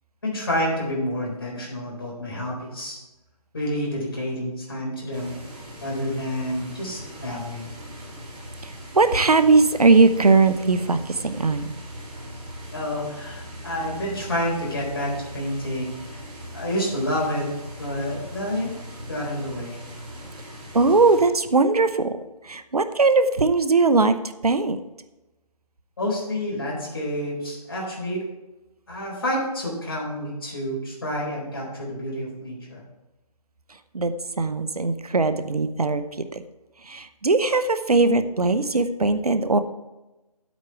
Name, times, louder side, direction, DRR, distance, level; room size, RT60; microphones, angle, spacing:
voice 1, 0.2-3.0 3.5-5.3 5.8-7.7 12.7-17.5 17.8-18.7 19.1-19.8 26.0-28.2 28.9-32.8, equal, 35° left, -3 dB, 4.0 m, -29 dB
sound 1, 5.1-21.3, equal, 15° right, 1.9 m, -40 dB
voice 2, 8.9-11.0 11.2-11.7 20.7-22.1 22.4-24.2 24.4-24.8 33.9-34.1 34.4-36.4 36.9-39.6, right 3 dB, 70° right, 11 dB, 0.9 m, -19 dB
9.8 x 8.3 x 4.7 m, 1.0 s
figure-of-eight pair, 165°, 20 cm